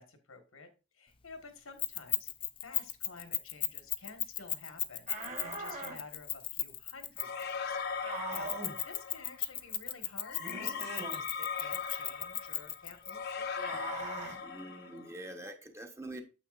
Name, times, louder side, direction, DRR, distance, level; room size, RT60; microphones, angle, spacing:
voice 1, 0.0-2.3 2.6-11.1 11.4-14.0, left 4 dB, 90° left, 7 dB, 1.5 m, -52 dB
Keys jangling, 1.8-7.5 8.3-13.1, left 12 dB, 25° left, 0.4 m, -35 dB
sound 1, 5.1-6.0 8.0-8.8 10.4-11.2 13.6-14.4, right 3 dB, 35° right, 1.6 m, -41 dB
sound 2, 7.2-9.4 10.2-15.1, left 6 dB, 50° left, 0.8 m, -39 dB
voice 2, 14.4-16.2, right 1 dB, 15° right, 5 dB, 0.9 m, -45 dB
9.0 x 7.3 x 2.5 m, 0.31 s
head